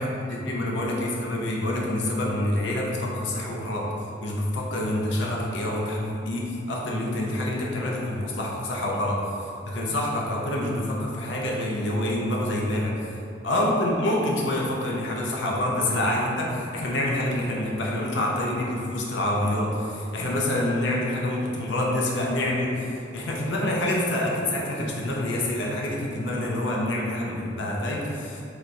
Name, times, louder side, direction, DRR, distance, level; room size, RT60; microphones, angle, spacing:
voice 1, 0.0-3.9 4.2-13.1 13.4-28.4, left 1 dB, 70° left, -2 dB, 0.5 m, -27 dB
3.3 x 2.8 x 2.5 m, 2.5 s
head